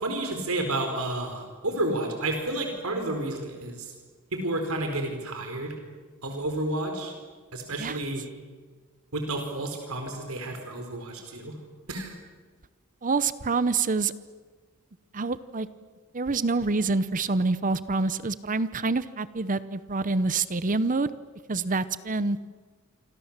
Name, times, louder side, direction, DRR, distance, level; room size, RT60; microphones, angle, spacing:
voice 1, 0.0-3.9 4.3-5.8 6.2-7.1 7.5-8.3 9.1-11.6 11.9-12.1, right 2 dB, 90° right, 4 dB, 4.4 m, -31 dB
voice 2, 13.0-14.1 15.1-15.7 16.1-21.1 21.5-22.4, right 3 dB, 40° right, 15 dB, 0.8 m, -26 dB
28.0 x 25.5 x 7.4 m, 1.5 s
head